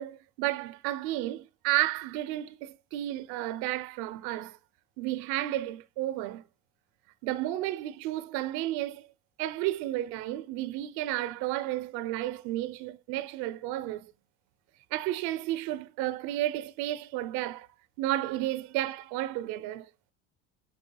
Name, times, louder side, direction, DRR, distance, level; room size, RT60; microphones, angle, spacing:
voice 1, 0.0-4.6 5.0-6.4 7.2-9.1 9.4-14.1 14.9-17.7 18.0-19.9, right 15 dB, 75° right, 0.8 m, -32 dB
9.7 x 4.3 x 2.3 m
cardioid pair, 175°, 38 cm